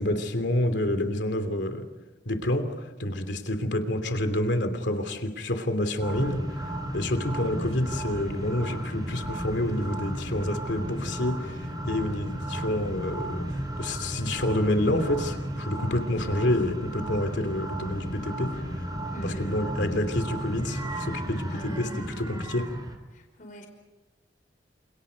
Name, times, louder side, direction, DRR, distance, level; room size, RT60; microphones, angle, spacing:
voice 1, 0.0-1.9 2.2-6.4 6.9-18.6 19.2-22.7, left 1 dB, 70° left, 8 dB, 2.9 m, -28 dB
sound 1, 6.0-23.0, right 1 dB, 25° right, 3.9 m, -34 dB
voice 2, 19.1-19.6 21.5-22.0 23.1-23.7, left 1 dB, 50° left, 3 dB, 5.0 m, -43 dB
29.5 x 28.0 x 5.3 m, 1.1 s
head